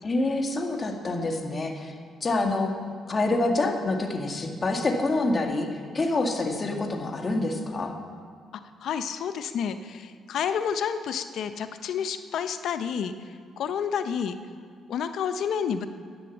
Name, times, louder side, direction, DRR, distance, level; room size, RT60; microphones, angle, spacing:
voice 1, 0.0-1.9 2.2-2.7 3.1-5.7 5.9-7.9, left 2 dB, 35° left, 2 dB, 1.7 m, -26 dB
voice 2, 8.8-13.1 13.6-14.3 14.9-15.9, left 7 dB, 70° left, 10 dB, 0.6 m, -29 dB
11.0 x 8.6 x 7.2 m, 2.1 s
cardioid pair, 90°, 0 cm